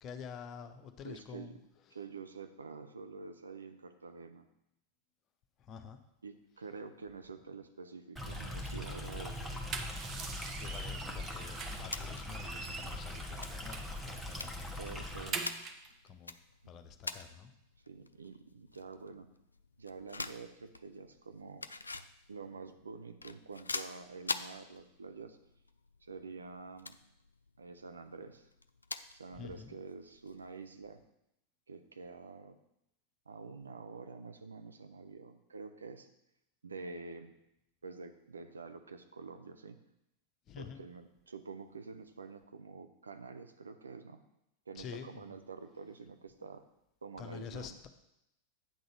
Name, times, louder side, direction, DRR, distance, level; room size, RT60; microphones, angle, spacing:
voice 1, 0.0-1.5 5.7-6.0 10.6-14.7 16.1-16.3 16.7-17.5 29.4-29.7 40.5-40.8 44.8-45.2 47.2-47.9, left 7 dB, 35° left, 7 dB, 0.7 m, -47 dB
voice 2, 1.0-1.6 1.9-4.5 6.2-9.6 14.2-14.4 14.8-15.4 17.9-19.3 19.8-21.7 22.3-25.4 26.0-27.0 27.6-28.5 29.1-31.0 31.7-32.6 33.3-36.1 36.6-37.3 37.8-39.8 40.6-44.2 44.7-46.6 47.0-47.8, right 4 dB, 75° right, 7 dB, 0.6 m, -47 dB
Stream, 8.2-15.3, left 1 dB, 5° right, 1.1 m, -41 dB
sound 1, 9.4-11.9 12.3-14.0 14.4-14.5 14.8-15.9, right 5 dB, 30° right, 0.8 m, -43 dB
sound 2, 11.7-30.7, left 3 dB, 80° left, 0.3 m, -47 dB
8.7 x 3.9 x 6.6 m, 0.83 s
figure-of-eight pair, 90°, 0 cm